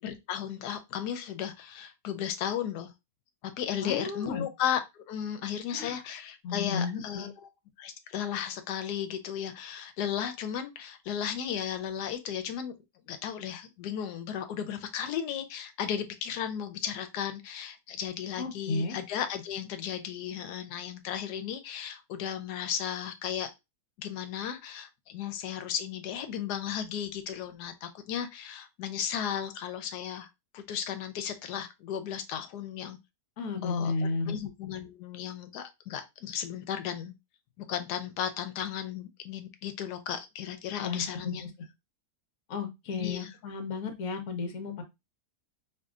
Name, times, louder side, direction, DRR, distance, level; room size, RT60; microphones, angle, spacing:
voice 1, 0.0-2.9 3.4-7.5 7.8-12.7 13.1-23.5 24.0-30.3 30.5-33.0 33.6-37.1 37.6-41.4 43.0-43.3, left 9 dB, 85° left, 9 dB, 1.2 m, -35 dB
voice 2, 3.7-4.5 5.7-6.0 6.4-7.3 18.4-19.0 33.4-34.4 40.8-41.3 42.5-44.8, left 4 dB, 65° left, 7 dB, 1.2 m, -33 dB
4.7 x 2.5 x 2.4 m, 0.22 s
omnidirectional pair, 1.7 m